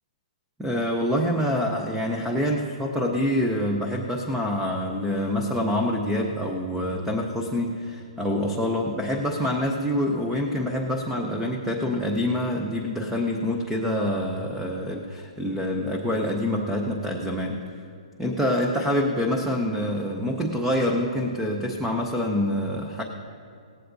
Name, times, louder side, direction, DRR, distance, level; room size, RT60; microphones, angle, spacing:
voice 1, 0.6-17.7 18.2-23.0, left 1 dB, 5° right, 1 dB, 0.4 m, -26 dB
18.0 x 15.5 x 2.6 m, 2.4 s
hypercardioid pair, 180°, 4 cm